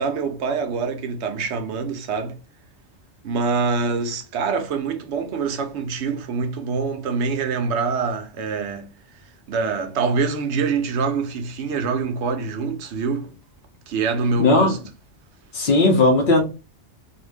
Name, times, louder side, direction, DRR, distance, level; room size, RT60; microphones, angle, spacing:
voice 1, 0.0-2.4 3.2-8.9 9.5-13.3 13.9-14.8, right 5 dB, 75° right, 0.9 m, -25 dB
voice 2, 14.4-14.8 15.5-16.4, left 2 dB, 55° left, 0.7 m, -16 dB
2.6 x 2.1 x 3.3 m
omnidirectional pair, 1.2 m